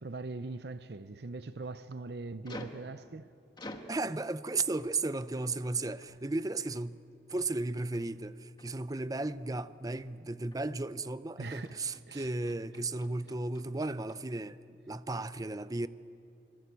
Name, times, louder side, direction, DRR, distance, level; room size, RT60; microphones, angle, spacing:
voice 1, 0.0-3.3 11.4-11.8 12.1-12.3 15.1-15.2, right 3 dB, 65° right, 0.6 m, -41 dB
sound 1, 1.6-1.8 2.4-2.9 3.6-4.0 4.7-5.0 5.4-5.7 6.0-6.3 6.6-6.9 7.3-7.6 7.9-8.2 8.6-8.9 9.2-9.5 9.9-10.1 10.5-10.8 11.6-14.2, left 1 dB, 25° left, 1.6 m, -50 dB
voice 2, 3.9-7.0 7.3-14.6 14.9-15.9, right 2 dB, 20° right, 0.6 m, -35 dB
26.0 x 24.5 x 8.3 m
head